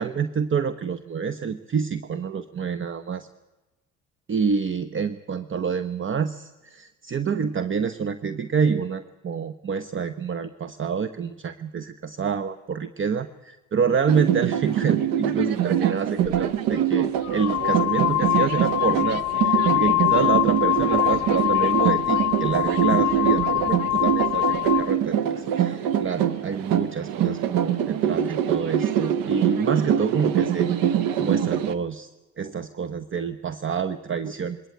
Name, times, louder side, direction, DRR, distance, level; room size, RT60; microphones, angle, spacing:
voice 1, 0.0-3.3 4.3-30.7 31.2-32.1 32.4-34.6, right 6 dB, 35° right, 14 dB, 1.0 m, -27 dB
sound 1, 14.1-31.7, right 9 dB, 70° right, 1.2 m, -24 dB
sound 2, 16.2-16.4 17.2-24.9, left 17 dB, 50° left, 0.8 m, -24 dB
21.5 x 18.5 x 9.2 m, 1.1 s
supercardioid pair, 65°, 35 cm